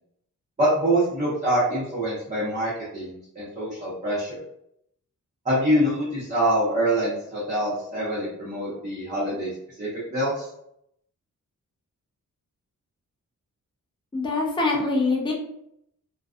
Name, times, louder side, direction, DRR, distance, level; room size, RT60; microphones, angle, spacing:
voice 1, 0.6-4.4 5.4-9.5 9.8-10.5, right 1 dB, 25° right, -10 dB, 0.8 m, -25 dB
voice 2, 14.1-15.3, left 3 dB, 15° left, -1 dB, 0.5 m, -24 dB
2.3 x 2.3 x 2.4 m, 0.74 s
wide cardioid pair, 150°, 33 cm